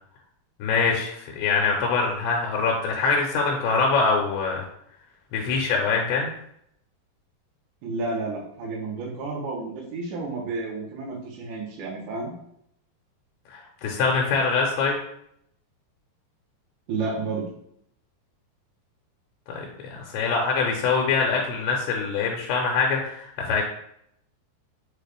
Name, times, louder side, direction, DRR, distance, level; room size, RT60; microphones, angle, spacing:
voice 1, 0.6-4.6 5.3-6.3 13.5-15.0 19.5-23.7, left 4 dB, 90° left, 0 dB, 2.7 m, -24 dB
voice 2, 7.8-12.3 16.9-17.5, right 3 dB, 70° right, -4 dB, 1.8 m, -31 dB
6.5 x 2.3 x 3.3 m, 0.72 s
omnidirectional pair, 4.6 m